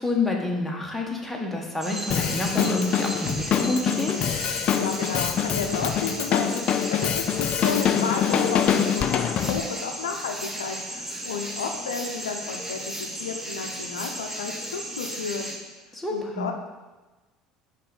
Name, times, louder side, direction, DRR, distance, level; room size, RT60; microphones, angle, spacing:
voice 1, 0.0-4.2 15.9-16.5, left 2 dB, 5° left, -1 dB, 1.3 m, -28 dB
sound 1, 1.8-15.6, right 1 dB, 10° right, 1.1 m, -35 dB
Drum kit, 2.1-9.6, left 8 dB, 45° left, 0.4 m, -25 dB
voice 2, 4.8-15.4 16.1-16.5, left 5 dB, 85° left, 4 dB, 0.6 m, -32 dB
5.4 x 4.1 x 5.2 m, 1.2 s
hypercardioid pair, 65°, 3 cm